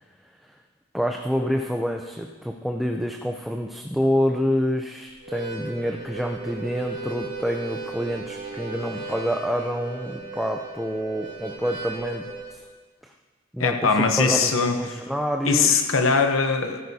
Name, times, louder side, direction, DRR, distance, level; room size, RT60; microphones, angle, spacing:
voice 1, 0.9-12.6 13.0-13.1 13.5-15.9, equal, ahead, 2 dB, 0.5 m, -27 dB
Harmonica, 5.1-12.5, right 3 dB, 60° right, 3.4 m, -36 dB
voice 2, 13.6-14.8 15.4-16.8, left 5 dB, 70° left, 6 dB, 0.8 m, -21 dB
15.0 x 13.5 x 2.8 m, 1.4 s
head